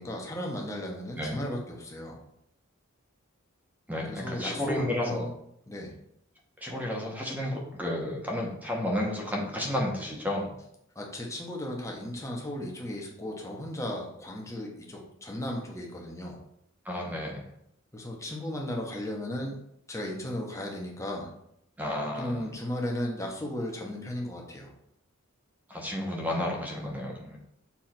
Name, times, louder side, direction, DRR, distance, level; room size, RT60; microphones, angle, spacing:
voice 1, 0.0-2.2 4.1-5.3 5.7-5.9 10.9-16.4 17.9-19.6 19.9-21.3 22.1-24.7, left 1 dB, 15° left, -1 dB, 1.3 m, -35 dB
voice 2, 3.9-5.3 6.6-10.5 16.8-17.5 21.8-22.5 25.7-27.4, left 1 dB, 10° right, -1 dB, 1.2 m, -32 dB
7.2 x 3.6 x 4.5 m, 0.74 s
head